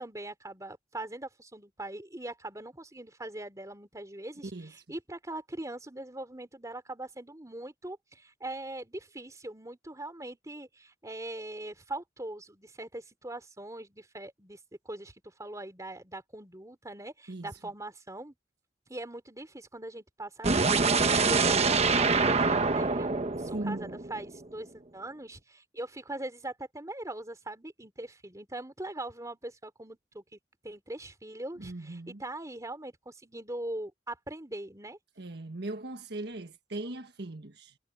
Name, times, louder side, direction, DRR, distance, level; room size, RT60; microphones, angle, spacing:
voice 1, 0.0-14.6 14.9-18.4 18.9-20.8 21.1-35.0, right 1 dB, 20° right, 3.6 m, -41 dB
voice 2, 17.3-17.6 21.3-21.6 23.5-24.0 31.6-32.2 35.2-37.8, right 2 dB, 65° right, 1.5 m, -39 dB
sound 1, 20.4-24.4, right 4 dB, 35° right, 1.1 m, -25 dB
head